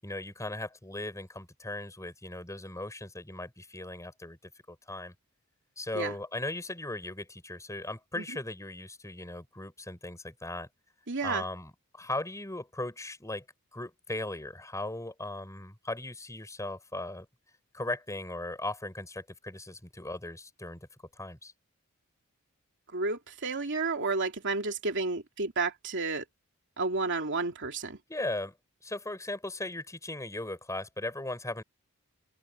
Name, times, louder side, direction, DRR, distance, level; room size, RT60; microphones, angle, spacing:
voice 1, 0.0-4.4 4.7-5.1 5.8-10.7 11.2-13.4 13.7-17.3 17.7-20.9 21.1-21.5 28.1-28.6 28.8-31.6, left 2 dB, 15° left, 5.7 m, -38 dB
voice 2, 11.1-11.4 22.9-26.2 26.8-28.0, right 3 dB, 60° right, 2.8 m, -31 dB
open air
head